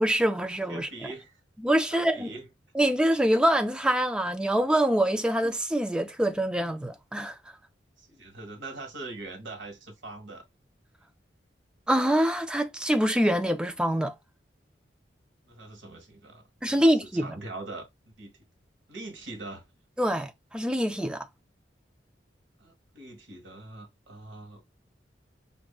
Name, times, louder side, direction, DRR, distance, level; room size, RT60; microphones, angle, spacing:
voice 1, 0.0-1.1 1.6-2.3 2.7-7.4 11.9-14.1 16.6-17.4 20.0-21.3, right 1 dB, 5° right, 0.3 m, -25 dB
voice 2, 0.7-1.4 1.9-2.5 8.0-10.4 15.4-17.9 18.2-18.3 18.9-19.6 22.6-24.6, right 2 dB, 80° right, 1.4 m, -42 dB
5.9 x 2.6 x 2.3 m
head